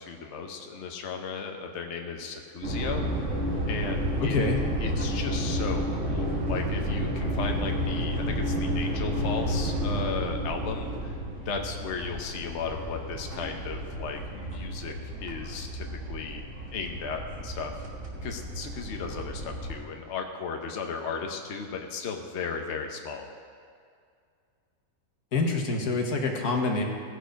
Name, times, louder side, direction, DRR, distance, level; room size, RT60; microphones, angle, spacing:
voice 1, 0.0-3.1 3.7-4.4 4.7-11.2 11.4-16.4 16.7-17.9 18.2-23.3, left 5 dB, 55° left, 3 dB, 1.1 m, -35 dB
sound 1, 2.6-19.7, equal, 55° right, 1.7 m, -31 dB
voice 2, 4.2-4.6 25.3-26.8, left 3 dB, 85° left, 2 dB, 1.7 m, -26 dB
17.0 x 6.4 x 5.1 m, 2.2 s
omnidirectional pair, 1.6 m